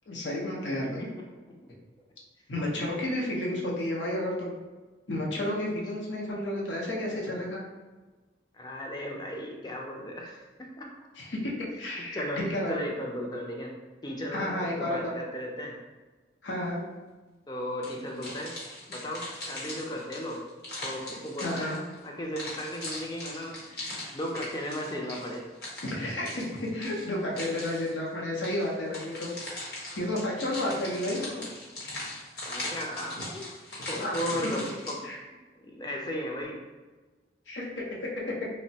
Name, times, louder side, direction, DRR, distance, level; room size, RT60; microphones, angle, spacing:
voice 1, 0.1-1.1 2.5-4.5 5.1-7.6 11.2-11.5 11.8-12.8 14.3-15.1 16.4-16.8 21.4-21.8 25.9-29.3 30.0-31.4 33.9-34.4 35.0-35.2 37.5-37.8, left 1 dB, 90° left, -3 dB, 0.7 m, -31 dB
voice 2, 2.7-3.2 6.3-6.4 8.5-10.9 12.1-12.4 12.7-13.8 14.0-15.8 17.5-18.6 18.9-20.5 20.8-21.8 22.0-25.4 30.6-30.8 32.4-33.5 33.9-35.0 35.6-36.6, equal, 20° left, 0 dB, 0.4 m, -36 dB
sound 1, 17.8-22.0 22.4-28.0 28.4-35.0, left 1 dB, 55° left, 0.9 m, -40 dB
3.1 x 2.1 x 2.7 m, 1.3 s
head